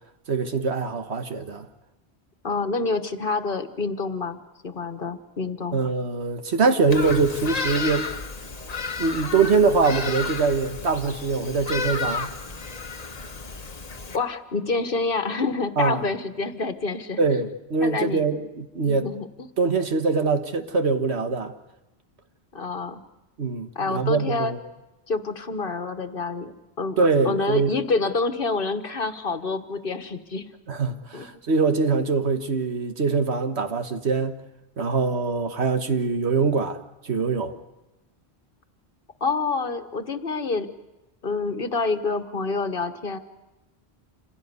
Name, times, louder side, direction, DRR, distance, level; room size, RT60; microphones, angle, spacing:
voice 1, 0.3-1.7 5.7-8.1 9.0-12.3 15.8-16.1 17.2-19.1 19.6-21.5 23.4-24.6 27.0-27.7 30.7-34.4 34.8-37.5, right 4 dB, 80° right, 1.7 m, -23 dB
voice 2, 2.4-4.4 4.6-5.8 14.1-17.2 17.8-18.2 18.8-19.5 22.5-23.0 23.7-24.5 25.1-27.0 27.2-30.4 31.1-31.3 39.2-40.7 41.2-43.2, left 3 dB, 55° left, 1.5 m, -27 dB
Bird vocalization bird call bird song, 6.9-14.2, left 4 dB, 40° left, 1.2 m, -32 dB
27.0 x 17.0 x 9.5 m
omnidirectional pair, 1.1 m